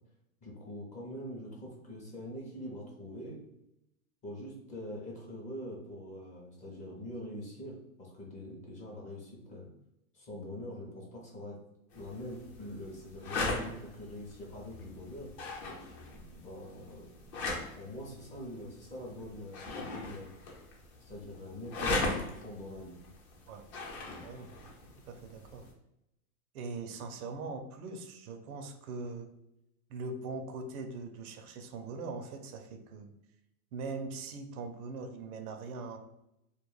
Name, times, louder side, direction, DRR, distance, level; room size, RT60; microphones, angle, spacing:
voice 1, 0.4-3.4 4.2-9.7 10.1-11.6 11.9-15.3 16.1-17.4 17.7-20.3 21.1-23.0, left 1 dB, 20° left, -3 dB, 0.5 m, -44 dB
sound 1, 11.9-25.7, left 2 dB, 50° left, 0.8 m, -39 dB
voice 2, 24.0-24.5 25.1-25.7 26.5-29.3 29.9-33.1 33.7-36.0, right 3 dB, 80° right, 7 dB, 0.5 m, -41 dB
2.2 x 2.0 x 3.1 m, 0.85 s
hypercardioid pair, 125°, 43 cm